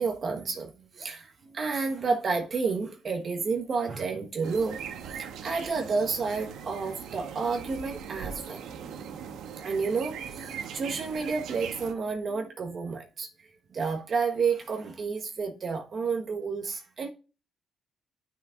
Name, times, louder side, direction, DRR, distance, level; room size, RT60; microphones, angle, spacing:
voice 1, 0.0-4.8 5.1-8.6 9.6-13.3 13.7-17.1, right 4 dB, 50° right, 1.4 m, -30 dB
sound 1, 4.4-11.9, right 7 dB, 80° right, 1.2 m, -40 dB
10.5 x 6.1 x 2.5 m
cardioid pair, 90°, 0 cm